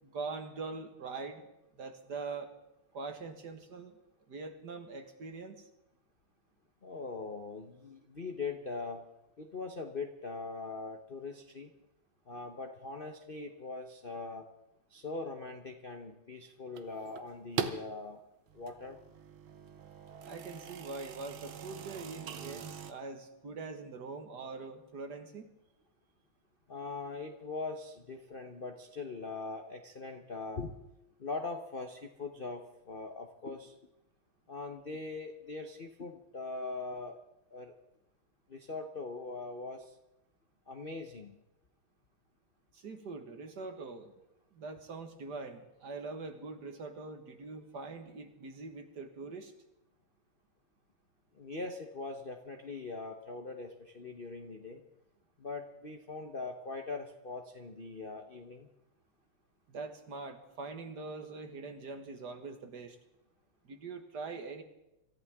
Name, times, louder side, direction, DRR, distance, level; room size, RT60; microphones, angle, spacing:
voice 1, 0.0-1.5 1.7-2.5 2.9-4.0 4.3-5.7 20.2-25.5 42.7-44.2 44.5-49.5 59.7-63.0 63.6-64.6, right 4 dB, 50° right, 6 dB, 1.9 m, -43 dB
voice 2, 6.8-9.0 9.4-11.7 12.3-14.5 14.9-18.2 18.5-19.0 26.7-30.8 31.2-33.7 34.5-37.2 37.5-37.7 38.5-40.0 40.7-41.4 51.3-54.8 55.4-58.7, left 3 dB, 40° left, 5 dB, 0.7 m, -41 dB
sound 1, 16.7-17.9 18.5-22.9, right 8 dB, 70° right, 1.7 m, -42 dB
26.0 x 14.0 x 3.6 m, 0.90 s
omnidirectional pair, 2.4 m